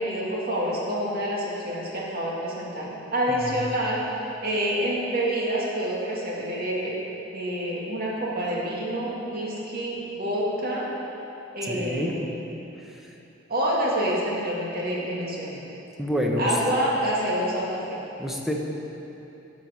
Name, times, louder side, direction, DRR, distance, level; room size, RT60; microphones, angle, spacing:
voice 1, 0.0-4.0 4.4-6.9 7.3-10.9 11.5-12.4 13.5-15.6 16.4-18.0, equal, 50° right, -5 dB, 2.1 m, -27 dB
voice 2, 11.6-12.2 16.0-16.5 18.2-18.5, equal, ahead, -1 dB, 1.0 m, -27 dB
12.0 x 6.1 x 5.7 m, 3.0 s
head